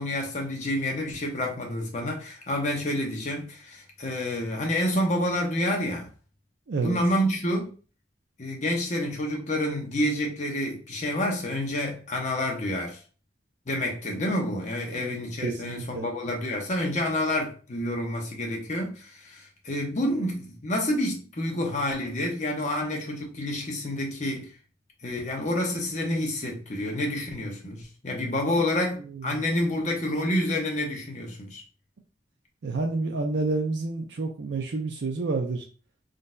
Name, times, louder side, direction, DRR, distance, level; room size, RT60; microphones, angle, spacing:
voice 1, 0.0-6.1 6.8-7.7 8.4-13.0 13.7-24.5 25.0-31.6, left 1 dB, 40° left, 0.8 m, -28 dB
voice 2, 6.7-7.0 14.9-16.1 28.2-28.6 29.0-29.4 32.6-35.6, right 3 dB, 70° right, 0.5 m, -30 dB
3.7 x 2.6 x 2.2 m
head